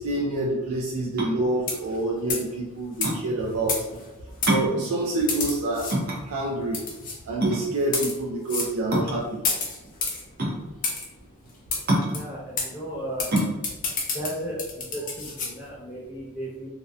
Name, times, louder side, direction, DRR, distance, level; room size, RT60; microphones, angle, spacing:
voice 1, 0.0-3.8 4.4-6.0 6.2-6.8 7.3-9.5, right 2 dB, 90° right, -4 dB, 0.4 m, -27 dB
sound 1, 1.1-15.4, right 1 dB, 45° right, 0.6 m, -29 dB
sound 2, 1.6-2.0 2.3-2.5 3.0-3.1 3.7-4.1 4.4-4.6 5.3-6.0 6.7-7.2 7.8-8.2 8.5-8.7 9.4-10.2 10.8-11.1 11.7-11.8 12.1-12.2 12.6-12.7 13.2-15.5, left 4 dB, 40° left, 0.5 m, -29 dB
voice 2, 12.1-13.3 14.1-16.7, right 1 dB, 10° right, -7 dB, 0.8 m, -35 dB
2.6 x 2.1 x 2.3 m, 1.1 s
head